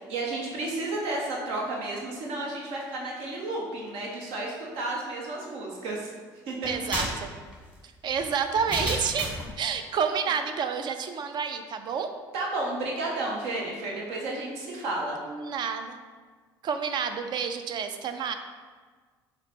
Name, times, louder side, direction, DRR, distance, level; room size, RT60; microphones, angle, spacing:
voice 1, 0.1-6.1 6.5-6.7 12.3-15.2, right 2 dB, 75° right, -2 dB, 1.0 m, -32 dB
sound 1, 6.6-9.5, equal, 10° right, 1.2 m, -33 dB
voice 2, 6.6-7.3 8.0-12.1 15.3-16.0 16.6-18.3, right 6 dB, 50° right, 8 dB, 0.4 m, -29 dB
4.1 x 2.2 x 4.1 m, 1.5 s
supercardioid pair, 75°, 10 cm